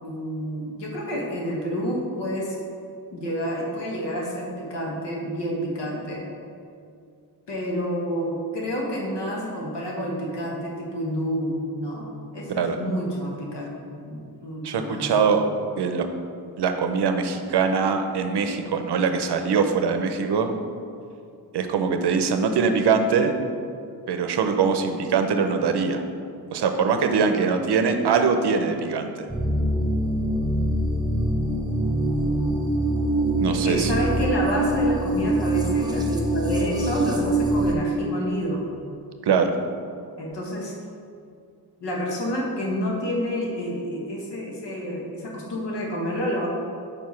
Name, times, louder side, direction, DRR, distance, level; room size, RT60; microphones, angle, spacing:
voice 1, 0.0-2.5 3.1-6.2 7.5-12.1 12.3-15.1 33.5-38.6 40.2-40.7 41.8-46.5, equal, 85° left, -2 dB, 1.4 m, -29 dB
voice 2, 14.6-15.5 15.8-16.1 16.6-20.5 21.5-23.3 24.1-26.0 26.5-29.3 33.4-33.9 39.2-39.5, right 5 dB, 75° right, 6 dB, 0.6 m, -22 dB
sound 1, 29.3-37.7, right 1 dB, 10° right, 0.6 m, -24 dB
5.0 x 4.8 x 5.7 m, 2.4 s
wide cardioid pair, 155°, 41 cm